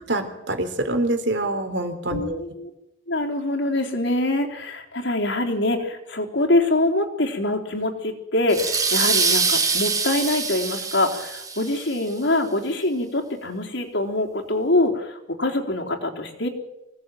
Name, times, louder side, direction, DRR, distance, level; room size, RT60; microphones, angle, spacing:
voice 1, 0.1-2.4, right 2 dB, 60° right, 8 dB, 3.7 m, -25 dB
voice 2, 2.1-2.7 3.1-16.5, left 2 dB, 65° left, 2 dB, 3.8 m, -24 dB
sound 1, 8.5-11.9, right 4 dB, 15° right, 3.2 m, -24 dB
25.5 x 18.0 x 9.2 m, 0.92 s
head